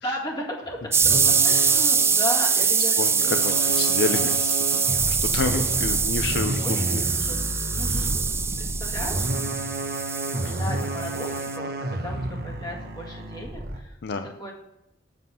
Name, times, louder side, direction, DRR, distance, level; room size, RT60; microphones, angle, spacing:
voice 1, 0.0-1.2 1.4-3.9 4.1-4.3 5.5-5.6 6.6-6.8 7.2-7.4 7.7-8.2 8.6-9.3 10.6-14.0 14.4-14.5, left 1 dB, 20° left, -1 dB, 1.9 m, -35 dB
sound 1, 0.7-13.8, right 1 dB, 55° right, 1.1 m, -31 dB
sound 2, 0.9-11.5, right 6 dB, 15° right, 0.3 m, -23 dB
voice 2, 3.0-7.0 7.8-8.1 10.4-10.6 14.0-14.2, left 4 dB, 60° left, 7 dB, 0.5 m, -30 dB
7.9 x 7.6 x 5.5 m, 0.86 s
head